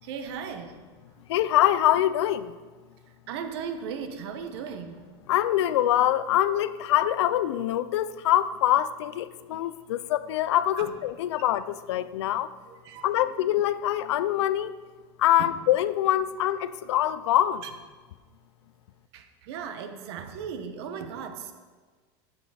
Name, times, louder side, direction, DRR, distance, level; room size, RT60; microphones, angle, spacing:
voice 1, 0.0-0.8 1.2-1.3 3.1-5.1 10.8-10.9 11.4-11.5 12.6-13.3 15.4-15.6 17.6-17.7 19.1-21.5, right 7 dB, 70° right, 7 dB, 1.1 m, -37 dB
voice 2, 1.3-2.5 5.3-12.5 13.0-14.7 15.2-17.6, left 12 dB, 85° left, 14 dB, 0.5 m, -24 dB
10.0 x 6.1 x 4.9 m, 1.4 s
supercardioid pair, 145°, 14 cm